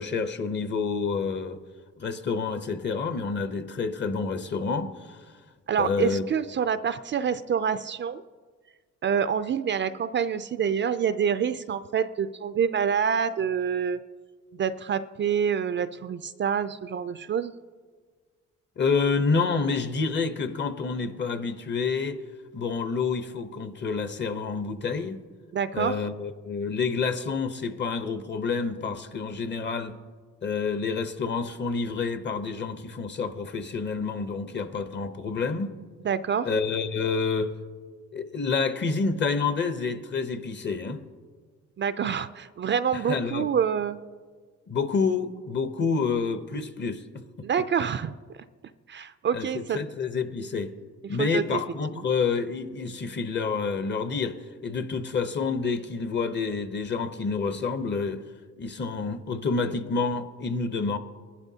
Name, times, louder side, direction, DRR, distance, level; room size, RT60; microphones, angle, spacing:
voice 1, 0.0-1.6 2.0-5.2 5.8-6.2 18.8-22.2 22.5-25.2 25.7-29.9 30.4-35.8 36.4-37.5 38.1-41.0 42.9-43.5 44.7-47.5 49.3-50.7 51.1-54.4 54.6-58.2 58.6-61.0, left 4 dB, 35° left, 0.8 m, -28 dB
voice 2, 5.7-8.2 9.0-14.0 14.5-17.5 25.5-26.0 36.0-36.5 41.8-44.0 47.4-48.1 48.9-49.8 51.2-51.6 51.9-52.0, right 7 dB, 40° right, 0.4 m, -27 dB
20.5 x 11.5 x 2.8 m
cardioid pair, 90°, 30 cm